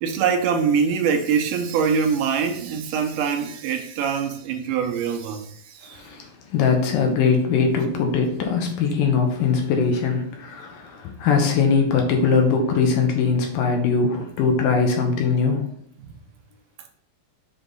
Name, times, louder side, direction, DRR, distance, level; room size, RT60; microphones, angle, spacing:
voice 1, 0.0-6.0 16.0-16.1, right 6 dB, 80° right, 2.1 m, -24 dB
voice 2, 5.9-15.7, left 5 dB, 75° left, 2.7 m, -21 dB
7.1 x 3.4 x 4.0 m
omnidirectional pair, 4.0 m